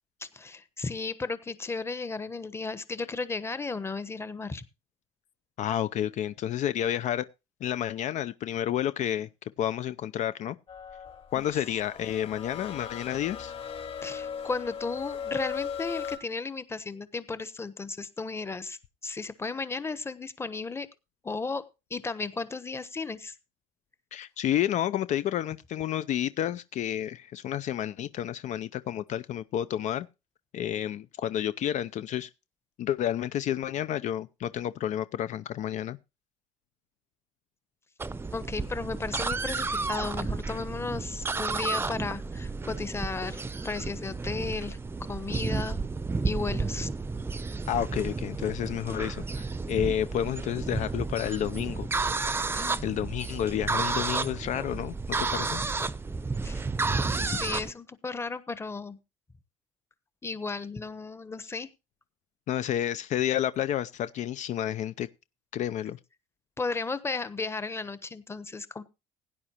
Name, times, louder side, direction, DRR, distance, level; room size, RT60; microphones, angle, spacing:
voice 1, 0.2-4.6 11.5-11.6 14.0-20.9 21.2-21.6 21.9-23.3 38.3-45.8 46.2-46.9 52.5-52.8 56.4-56.7 57.2-59.0 60.2-61.7 66.6-68.8, left 4 dB, 20° left, 1.1 m, -34 dB
voice 2, 5.6-7.3 7.6-9.3 9.6-10.6 11.3-13.5 24.1-30.1 30.5-32.3 32.8-36.0 47.7-51.9 52.8-55.6 62.5-65.1 65.5-66.0, left 11 dB, 55° left, 0.6 m, -30 dB
sound 1, 10.7-16.2, left 7 dB, 40° left, 3.2 m, -38 dB
sound 2, 38.0-57.7, right 3 dB, 15° right, 0.7 m, -32 dB
16.5 x 10.0 x 3.0 m
supercardioid pair, 95°, 14 cm